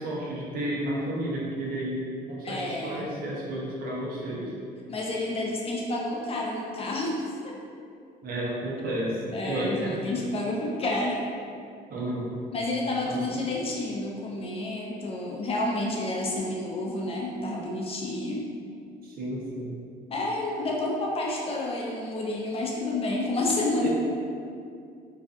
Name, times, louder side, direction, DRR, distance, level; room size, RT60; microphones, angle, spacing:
voice 1, 0.0-4.5 8.2-10.0 11.9-12.4 13.0-13.2 19.0-19.8 23.8-23.9, right 1 dB, 60° right, -5 dB, 0.7 m, -32 dB
voice 2, 2.4-3.1 4.9-7.2 7.4-7.6 9.3-11.2 12.5-18.5 20.1-23.9, left 2 dB, 35° left, -2 dB, 0.4 m, -30 dB
2.4 x 2.4 x 2.5 m, 2.4 s
cardioid pair, 110°, 17 cm